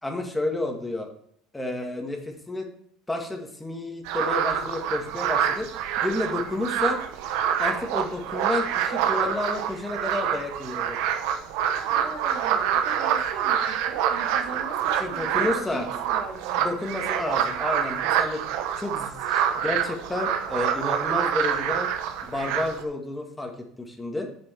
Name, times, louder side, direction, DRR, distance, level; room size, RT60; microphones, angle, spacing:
voice 1, 0.0-1.1 1.5-2.7 3.1-7.0 7.6-11.0 15.0-15.9 16.6-18.4 18.8-21.9 22.2-23.5 23.8-24.3, left 2 dB, 10° left, 2 dB, 2.1 m, -30 dB
sound 1, 4.0-22.8, right 9 dB, 75° right, 1.1 m, -26 dB
voice 2, 11.9-16.6, right 4 dB, 60° right, 5 dB, 1.5 m, -40 dB
7.8 x 7.1 x 4.6 m, 0.67 s
supercardioid pair, 90°, 0 cm